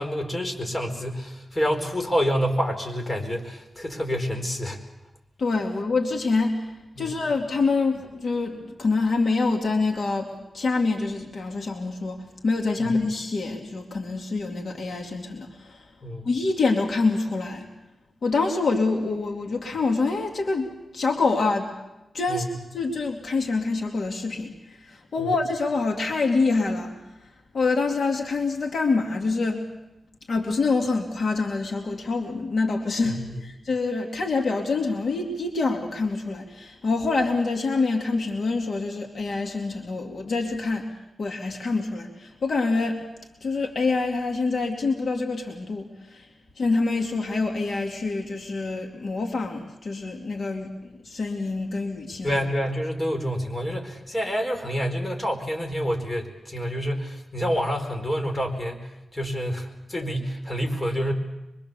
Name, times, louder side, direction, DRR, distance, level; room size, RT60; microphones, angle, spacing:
voice 1, 0.0-4.8 7.0-7.2 12.8-12.9 16.0-16.3 22.3-22.4 25.2-25.3 33.0-33.4 52.2-61.1, equal, 20° left, 2 dB, 4.6 m, -28 dB
voice 2, 5.4-15.9 16.2-17.7 18.2-21.7 22.1-26.9 27.5-29.6 30.3-40.9 41.2-43.0 43.4-46.3 46.6-52.4, left 3 dB, 60° left, 1 dB, 2.7 m, -26 dB
25.0 x 24.0 x 7.0 m, 0.94 s
wide cardioid pair, 110°, 0 cm